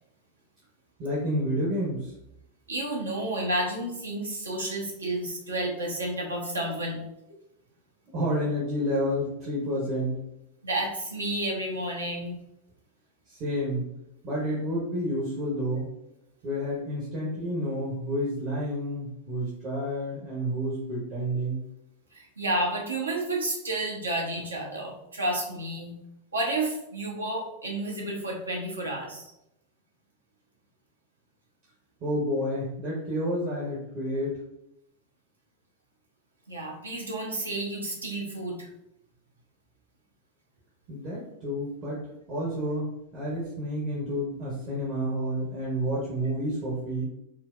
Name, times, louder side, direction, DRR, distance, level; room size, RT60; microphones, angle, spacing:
voice 1, 1.0-2.1 8.1-10.2 13.3-13.9 14.2-16.0 16.4-21.7 32.0-34.4 40.9-47.0, equal, 40° right, -6 dB, 0.9 m, -30 dB
voice 2, 2.7-7.0 10.6-12.4 22.1-26.0 26.3-29.3 36.5-38.7, right 1 dB, 75° right, -1 dB, 0.8 m, -31 dB
4.3 x 2.1 x 2.4 m, 0.82 s
figure-of-eight pair, 90°, 0 cm